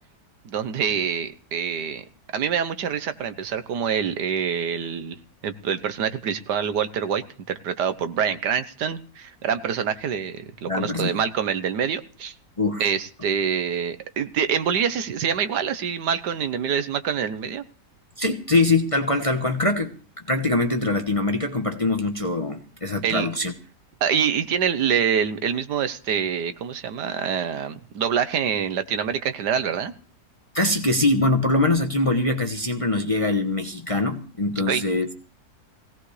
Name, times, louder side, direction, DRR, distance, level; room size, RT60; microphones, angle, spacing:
voice 1, 0.4-2.0 2.3-5.2 5.4-12.3 12.8-17.6 23.0-23.3 24.0-29.9 34.6-34.8, right 7 dB, 75° right, 11 dB, 1.5 m, -26 dB
voice 2, 10.7-11.2 12.6-12.8 18.2-19.9 20.3-23.5 30.5-35.2, left 2 dB, 25° left, 4 dB, 1.0 m, -23 dB
20.5 x 17.0 x 3.3 m, 0.40 s
omnidirectional pair, 1.8 m